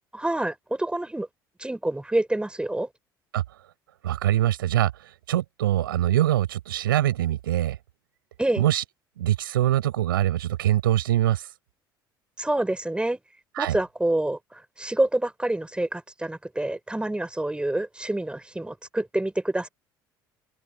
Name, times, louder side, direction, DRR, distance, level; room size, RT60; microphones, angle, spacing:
voice 1, 0.1-1.3 1.6-2.9 8.4-8.6 12.4-13.2 13.6-19.7, right 1 dB, 10° right, 4.6 m, -27 dB
voice 2, 4.0-7.8 8.6-8.8 9.2-11.5 13.6-13.8, right 13 dB, 80° right, 6.9 m, -23 dB
open air
figure-of-eight pair, 60°, 12 cm